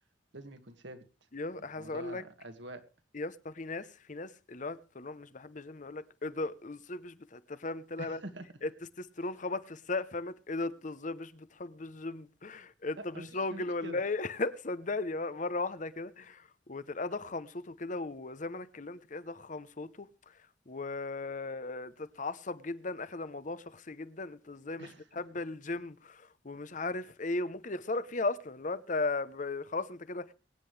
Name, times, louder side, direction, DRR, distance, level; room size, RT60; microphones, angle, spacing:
voice 1, 0.3-1.0 1.6-2.8 8.0-8.5 13.0-14.0 24.8-25.1, right 1 dB, 70° right, 2.0 m, -46 dB
voice 2, 1.3-2.2 3.1-8.2 8.6-8.7 9.0-20.4 20.7-30.3, left 3 dB, 40° left, 0.8 m, -37 dB
22.5 x 9.8 x 3.3 m
head